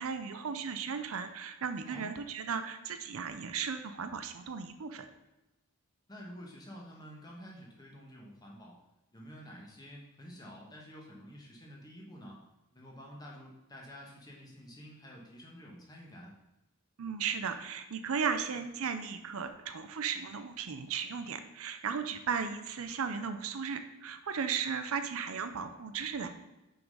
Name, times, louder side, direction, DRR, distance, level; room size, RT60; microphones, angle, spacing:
voice 1, 0.0-5.1 17.0-26.3, right 6 dB, 70° right, 9 dB, 0.5 m, -36 dB
voice 2, 6.1-8.8 9.1-12.4 12.7-16.3, equal, 20° left, -2 dB, 1.2 m, -49 dB
5.7 x 3.9 x 5.3 m, 0.98 s
head